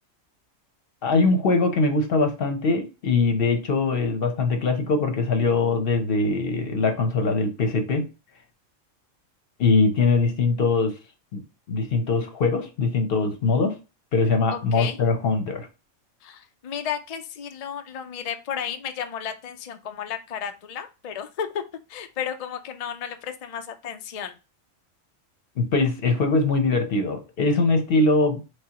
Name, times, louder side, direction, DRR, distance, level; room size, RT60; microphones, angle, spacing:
voice 1, 1.0-8.1 9.6-11.0 11.3-11.4 11.7-13.8 14.1-15.7 25.6-28.4, left 3 dB, 55° left, 0.8 m, -22 dB
voice 2, 14.5-15.0 16.2-21.6 21.9-24.3, left 8 dB, 85° left, 0.3 m, -33 dB
4.7 x 3.4 x 2.8 m
omnidirectional pair, 1.4 m